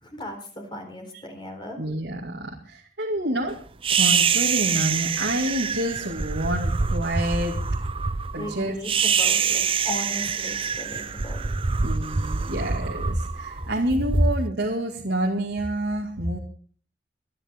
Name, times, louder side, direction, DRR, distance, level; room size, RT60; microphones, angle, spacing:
voice 1, 0.0-1.8 8.4-11.5, left 1 dB, 25° left, 4 dB, 4.2 m, -37 dB
voice 2, 1.8-3.5 3.9-7.6 8.3-8.8 11.8-16.4, right 1 dB, 70° right, -2 dB, 2.4 m, -27 dB
sound 1, 3.8-14.2, right 6 dB, 30° right, 0.5 m, -25 dB
24.0 x 10.5 x 3.7 m, 0.42 s
head